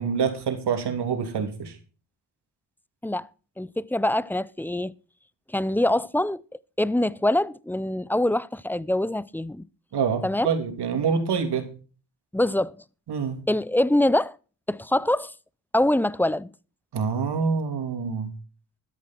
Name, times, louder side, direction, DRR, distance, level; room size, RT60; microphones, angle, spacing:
voice 1, 0.0-1.8 9.9-11.7 13.1-13.4 16.9-18.3, right 6 dB, 70° right, 3.0 m, -26 dB
voice 2, 3.6-4.9 5.5-6.4 6.8-9.6 10.2-10.5 12.3-12.7 13.5-14.4 14.7-15.3 15.7-16.5, left 1 dB, 5° left, 0.5 m, -24 dB
13.0 x 10.5 x 4.5 m
cardioid pair, 80°, 42 cm